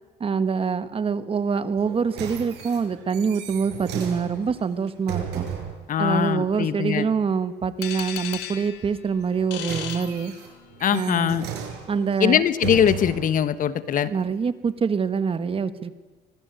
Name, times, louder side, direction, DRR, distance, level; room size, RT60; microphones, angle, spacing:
voice 1, 0.2-5.5 6.0-10.3 10.9-11.5 11.9-12.4 14.1-16.0, right 6 dB, 35° right, 12 dB, 1.5 m, -25 dB
sound 1, 1.8-5.8 9.2-13.4 14.1-14.2, right 9 dB, 85° right, 6.3 m, -35 dB
voice 2, 5.9-7.1 10.8-11.4 12.2-14.1, left 9 dB, 55° left, 14 dB, 1.3 m, -22 dB
sound 2, 7.8-10.9, left 11 dB, 90° left, 2.3 m, -36 dB
25.0 x 19.5 x 9.0 m, 1.4 s
cardioid pair, 110°, 17 cm